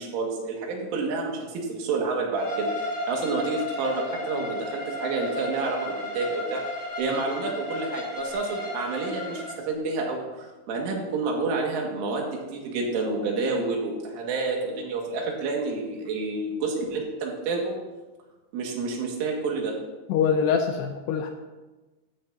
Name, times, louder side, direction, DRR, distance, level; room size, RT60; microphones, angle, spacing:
voice 1, 0.0-6.6 7.0-17.7 18.5-19.7, right 3 dB, 90° right, 0 dB, 4.6 m, -29 dB
Bowed string instrument, 2.4-9.6, left 1 dB, 25° left, 2.3 m, -33 dB
voice 2, 20.1-21.3, left 7 dB, 80° left, 4 dB, 2.5 m, -24 dB
16.0 x 12.0 x 2.8 m, 1.1 s
omnidirectional pair, 5.5 m